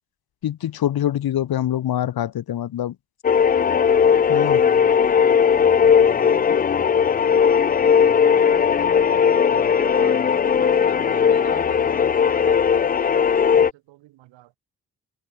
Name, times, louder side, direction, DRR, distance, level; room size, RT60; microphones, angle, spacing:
voice 1, 0.4-2.9 4.3-4.6, left 11 dB, 55° left, 1.1 m, -24 dB
sound 1, 3.2-13.7, left 7 dB, 20° left, 0.4 m, -17 dB
voice 2, 6.1-9.1 9.5-14.6, right 17 dB, 80° right, 5.6 m, -46 dB
hypercardioid pair, 40°, 44 cm